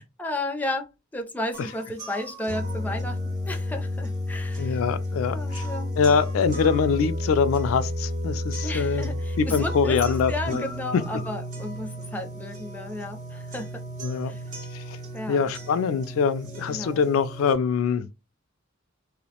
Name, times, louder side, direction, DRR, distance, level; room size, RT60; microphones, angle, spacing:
voice 1, 0.0-4.8 5.3-5.9 8.6-13.8 14.3-14.4 15.1-15.4 16.7-17.0, left 1 dB, 10° left, 0.4 m, -33 dB
sound 1, 1.5-17.5, left 1 dB, 40° right, 0.7 m, -32 dB
voice 2, 4.6-5.7 6.0-10.6 14.0-14.3 14.7-15.0 15.3-18.1, left 6 dB, 85° left, 0.3 m, -24 dB
2.4 x 2.1 x 2.7 m
head